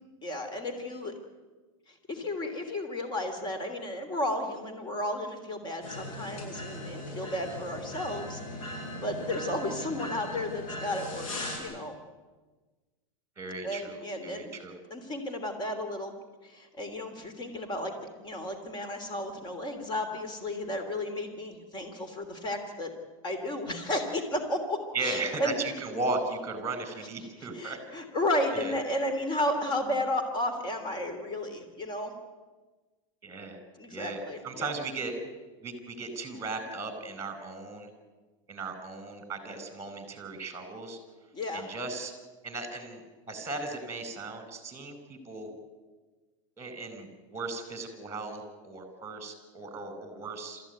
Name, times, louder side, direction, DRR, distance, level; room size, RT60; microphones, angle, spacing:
voice 1, 0.2-1.1 1.9-12.0 13.6-14.5 14.9-16.1 16.4-22.9 23.2-25.6 27.4-32.1 33.8-34.7 41.3-41.7, left 1 dB, 25° left, 7 dB, 3.2 m, -33 dB
sound 1, 5.8-11.6, left 1 dB, 80° left, 8.0 m, -39 dB
voice 2, 13.4-14.7 24.9-27.8 28.5-28.7 33.2-33.6 33.9-35.1 35.6-37.9 38.5-41.0 41.5-42.1 42.4-45.5 46.6-50.6, right 3 dB, 15° right, 9 dB, 4.7 m, -37 dB
27.0 x 14.5 x 9.4 m, 1.3 s
supercardioid pair, 130°, 17 cm